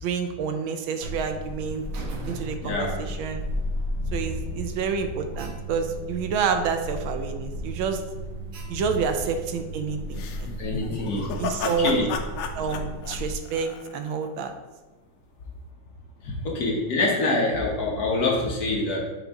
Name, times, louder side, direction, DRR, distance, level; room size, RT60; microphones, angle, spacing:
voice 1, 0.0-1.9 2.3-3.4 4.1-8.0 8.7-10.5 11.4-12.0 12.5-14.5, right 5 dB, 80° right, 7 dB, 1.4 m, -28 dB
Alarm, 1.0-13.4, equal, 60° right, 0.9 m, -34 dB
voice 2, 2.6-3.0 3.5-3.6 4.0-4.4 10.6-12.2 16.2-19.0, left 2 dB, 55° left, -2 dB, 1.3 m, -26 dB
sound 1, 10.1-14.3, left 5 dB, 70° left, 1.2 m, -34 dB
6.8 x 3.9 x 3.5 m, 1.1 s
omnidirectional pair, 2.2 m